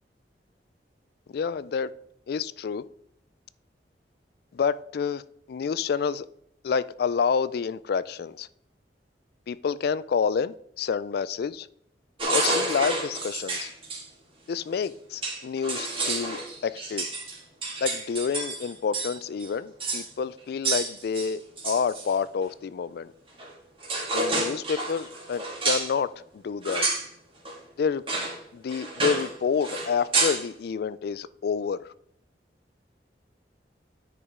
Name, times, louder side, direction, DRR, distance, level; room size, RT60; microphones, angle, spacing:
voice 1, 1.3-1.9 2.3-2.8 4.5-5.2 5.5-6.3 6.6-8.5 9.5-11.7 12.3-13.7 14.5-17.1 17.8-23.1 24.1-26.9 27.8-28.0 28.5-31.9, left 6 dB, 60° left, 0.3 m, -28 dB
sound 1, 12.2-14.0 14.8-14.9 15.2-19.1 19.4-19.5 19.8-20.1 20.6-22.1 23.4-23.5 23.8-25.9 26.6-27.1 27.4-27.6 28.1-28.4 28.7-29.3 29.6-30.5, right 3 dB, 30° right, 2.1 m, -29 dB
9.7 x 5.0 x 3.6 m
head